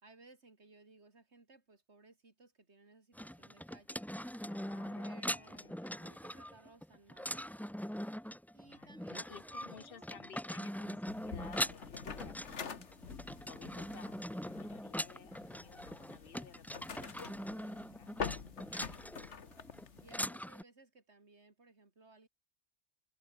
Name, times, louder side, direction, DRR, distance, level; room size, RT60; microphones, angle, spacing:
voice 1, 0.0-4.1 5.0-7.5 8.5-10.1 17.6-17.8 20.0-22.3, right 3 dB, 70° right, 3.4 m, -61 dB
sound 1, 3.1-20.6, equal, 5° left, 0.3 m, -42 dB
voice 2, 4.4-5.8 8.7-12.8 13.3-17.7 18.0-18.1, left 7 dB, 55° left, 0.9 m, -56 dB
sound 2, 11.1-20.3, left 6 dB, 80° left, 1.8 m, -46 dB
omnidirectional pair, 1.2 m